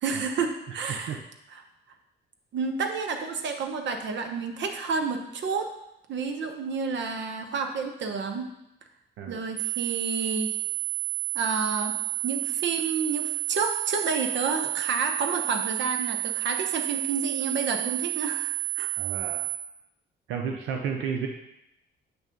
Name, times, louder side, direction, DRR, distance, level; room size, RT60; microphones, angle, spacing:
voice 1, 0.0-1.2 1.5-1.6 2.5-5.8 6.1-8.4 9.3-10.6 11.3-12.0 12.2-18.9, right 4 dB, 65° right, 5 dB, 0.9 m, -30 dB
voice 2, 9.2-9.5 19.0-19.5 20.3-21.3, right 6 dB, 90° right, 3 dB, 0.6 m, -32 dB
sound 1, 9.6-19.6, right 19 dB, 20° right, 0.8 m, -30 dB
7.9 x 3.3 x 5.2 m, 0.85 s
cardioid pair, 90°, 20 cm